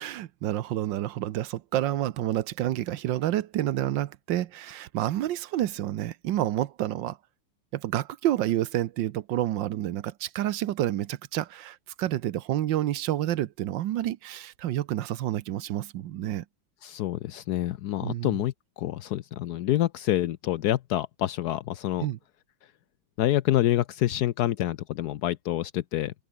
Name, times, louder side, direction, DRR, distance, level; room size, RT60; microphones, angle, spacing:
voice 1, 0.0-7.2 7.7-16.4 18.0-18.4 22.0-22.2, right 13 dB, 65° right, 1.3 m, -29 dB
voice 2, 16.8-22.1 23.2-26.1, left 13 dB, 75° left, 0.9 m, -27 dB
open air
omnidirectional pair, 2.4 m